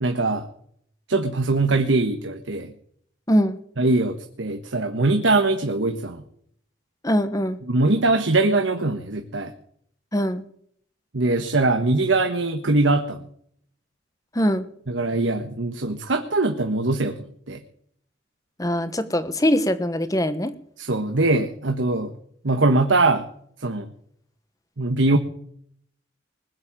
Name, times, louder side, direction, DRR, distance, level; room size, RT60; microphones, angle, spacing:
voice 1, 0.0-0.4 1.1-2.7 3.8-6.2 7.7-9.5 11.1-13.2 14.9-17.2 17.5-17.6 20.8-22.1 22.4-23.3 23.6-23.9 24.8-25.2, right 2 dB, 85° right, 6 dB, 1.3 m, -22 dB
voice 2, 3.3-3.6 7.0-7.6 10.1-10.4 14.3-14.7 18.6-20.5, equal, 20° left, 11 dB, 1.2 m, -22 dB
20.5 x 7.6 x 8.8 m, 0.65 s
head